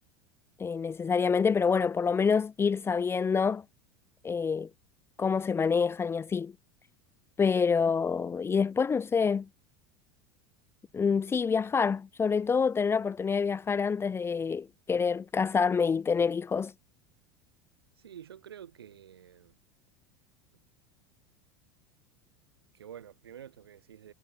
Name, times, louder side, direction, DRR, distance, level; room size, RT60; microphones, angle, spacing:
voice 1, 0.6-3.6 4.2-4.7 5.2-6.5 7.4-9.5 10.9-16.7, left 5 dB, 20° left, 0.4 m, -27 dB
voice 2, 18.0-19.5 22.7-24.1, right 9 dB, 90° right, 3.6 m, -48 dB
hypercardioid pair, 90°, 12 cm